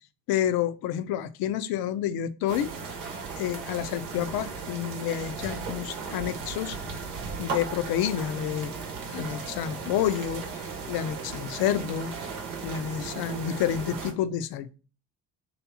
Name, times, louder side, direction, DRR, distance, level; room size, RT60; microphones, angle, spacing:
voice 1, 0.3-2.7 3.4-6.8 7.4-8.8 9.1-12.1 12.6-14.8, left 10 dB, 55° left, 0.6 m, -29 dB
sound 1, 2.5-14.1, right 5 dB, 80° right, 0.9 m, -36 dB
3.4 x 2.8 x 4.2 m
hypercardioid pair, 50°, 44 cm